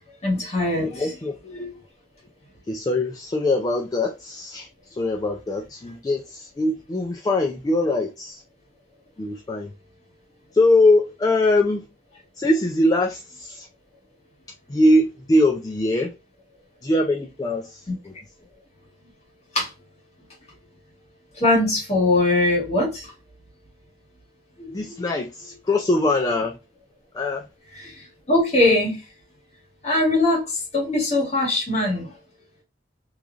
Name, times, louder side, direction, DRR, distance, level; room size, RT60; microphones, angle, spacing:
voice 1, 0.2-1.1 1.4-1.7 19.5-19.7 21.4-23.1 24.6-24.8 27.8-27.9 28.3-29.0 29.8-32.1, left 2 dB, 40° left, 1.6 m, -21 dB
voice 2, 0.8-1.3 2.7-8.4 9.2-9.7 10.5-11.9 12.4-13.7 14.7-16.1 16.8-18.1 24.7-26.5 27.1-27.5, left 2 dB, 20° left, 0.3 m, -22 dB
3.0 x 2.4 x 2.4 m
head